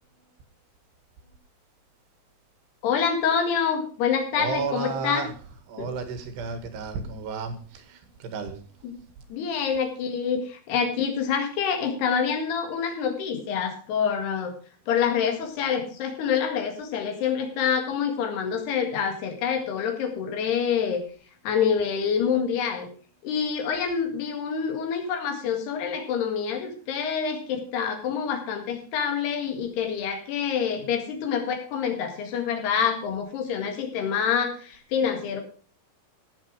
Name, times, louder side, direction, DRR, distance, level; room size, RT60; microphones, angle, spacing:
voice 1, 2.8-5.3 5.8-5.9 8.8-9.0 9.3-14.5 14.9-21.0 21.4-22.9 23.2-35.4, left 7 dB, 75° left, 5 dB, 4.0 m, -26 dB
voice 2, 4.3-5.3 5.7-9.2, right 4 dB, 85° right, 8 dB, 3.9 m, -33 dB
16.5 x 7.2 x 4.9 m, 0.43 s
omnidirectional pair, 4.7 m